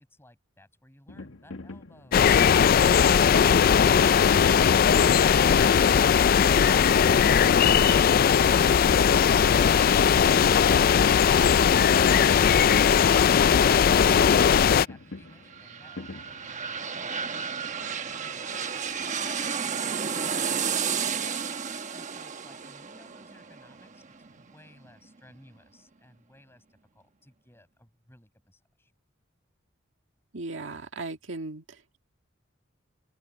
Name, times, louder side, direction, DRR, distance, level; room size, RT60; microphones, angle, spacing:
voice 1, 0.0-7.9 12.0-21.3 21.6-26.6 26.9-28.9, left 1 dB, 15° left, 7.4 m, -56 dB
sound 1, 1.1-16.8, left 2 dB, 85° left, 1.6 m, -41 dB
sound 2, 2.1-14.9, left 7 dB, 50° left, 0.3 m, -19 dB
sound 3, 15.3-24.9 25.3-25.4, right 6 dB, 40° right, 1.1 m, -32 dB
voice 2, 30.3-32.0, right 3 dB, 80° right, 1.8 m, -37 dB
head